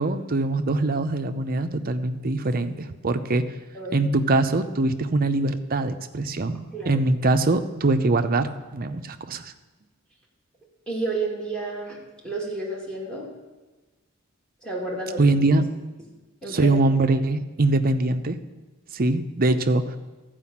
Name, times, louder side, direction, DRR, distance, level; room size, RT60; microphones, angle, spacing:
voice 1, 0.0-3.4 3.9-6.6 6.9-9.5 15.2-15.6 16.5-18.4 18.9-20.0, right 2 dB, 45° right, 8 dB, 0.7 m, -23 dB
voice 2, 3.7-4.1 6.7-7.0 10.9-12.0 12.2-13.3 14.6-15.4 16.4-16.7 17.2-17.3, right 2 dB, 5° left, -4 dB, 2.4 m, -31 dB
13.0 x 5.1 x 7.2 m, 1.2 s
head